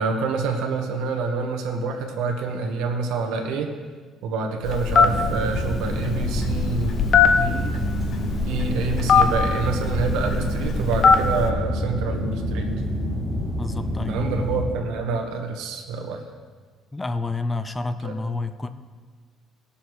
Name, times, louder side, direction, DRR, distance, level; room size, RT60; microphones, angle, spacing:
voice 1, 0.0-3.7 4.2-7.7 8.4-12.7 14.1-16.2 18.0-18.1, right 4 dB, 90° right, 3 dB, 1.5 m, -27 dB
Telephone, 4.6-11.5, left 5 dB, 45° left, 1.0 m, -21 dB
sound 1, 4.9-14.6, equal, 5° right, 3.0 m, -27 dB
voice 2, 13.6-14.2 16.9-18.7, left 3 dB, 15° left, 10 dB, 0.6 m, -29 dB
18.0 x 7.1 x 4.8 m, 1.5 s
cardioid pair, 125°, 0 cm